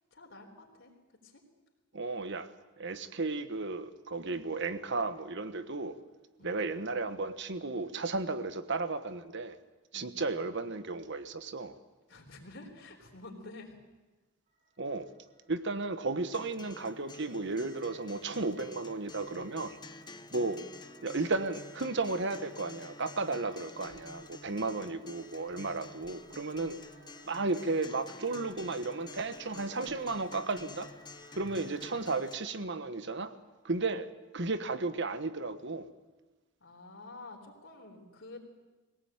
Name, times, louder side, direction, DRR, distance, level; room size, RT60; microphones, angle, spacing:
voice 1, 0.1-0.9 1.2-1.4 6.4-6.6 9.9-10.1 12.1-13.7 31.4-31.6 36.6-38.5, left 2 dB, 65° left, 0 dB, 3.7 m, -49 dB
voice 2, 1.9-2.5 2.8-6.0 6.4-9.6 9.9-11.7 14.8-15.1 15.5-19.8 20.3-20.6 21.0-26.8 27.2-30.9 31.4-33.3 33.6-34.1 34.3-35.9, right 3 dB, 60° right, 11 dB, 1.3 m, -34 dB
sound 1, 14.5-32.0, right 1 dB, 45° right, 7.5 m, -60 dB
Acoustic guitar, 16.3-32.3, left 3 dB, 20° left, 1.0 m, -50 dB
21.5 x 18.0 x 8.9 m, 1.2 s
head